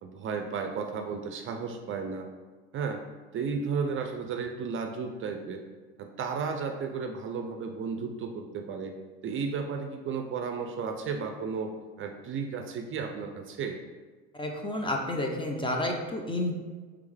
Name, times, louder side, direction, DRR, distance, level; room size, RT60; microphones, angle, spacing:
voice 1, 0.0-2.3 2.7-3.0 3.3-5.6 6.0-8.9 9.2-11.7 12.0-13.8, right 5 dB, 40° right, 4 dB, 0.5 m, -33 dB
voice 2, 14.3-16.5, left 1 dB, 15° left, 2 dB, 0.6 m, -30 dB
3.5 x 3.4 x 3.3 m, 1.4 s
hypercardioid pair, 80°, 32 cm